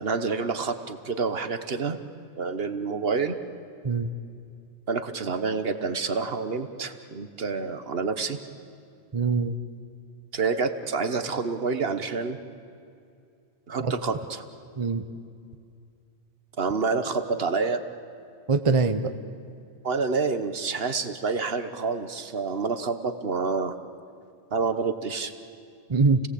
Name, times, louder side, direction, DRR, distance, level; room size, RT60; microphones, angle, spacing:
voice 1, 0.0-2.0 2.4-3.3 4.9-8.4 10.3-12.4 13.7-14.4 16.6-17.8 19.8-23.8 24.5-25.3, right 4 dB, 60° right, 9 dB, 1.4 m, -28 dB
voice 2, 9.1-9.6 13.8-13.9 14.8-15.0 18.5-19.1 25.9-26.2, right 4 dB, 30° right, 9 dB, 0.8 m, -23 dB
30.0 x 18.0 x 8.4 m, 2.5 s
omnidirectional pair, 1.2 m